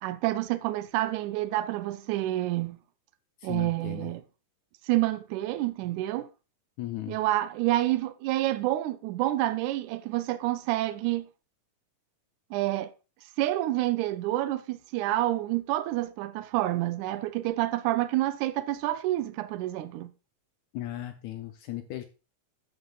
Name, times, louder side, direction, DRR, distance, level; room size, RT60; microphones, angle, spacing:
voice 1, 0.0-2.8 3.4-4.2 4.8-6.3 7.1-11.3 12.5-12.9 13.4-20.1, right 15 dB, 85° right, 1.7 m, -28 dB
voice 2, 3.4-4.1 6.8-7.2 20.7-22.0, left 14 dB, 80° left, 1.6 m, -36 dB
12.5 x 7.9 x 2.3 m
omnidirectional pair, 4.1 m